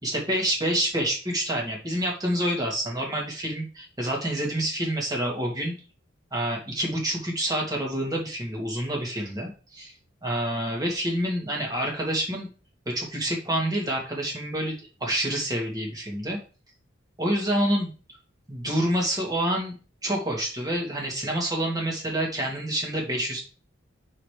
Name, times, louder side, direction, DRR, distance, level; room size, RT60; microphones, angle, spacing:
voice 1, 0.0-5.7 6.3-9.9 10.2-12.5 12.9-16.4 17.2-17.9 18.5-19.8 20.0-23.4, right 1 dB, 20° right, -2 dB, 2.3 m, -27 dB
5.8 x 4.1 x 5.0 m, 0.35 s
head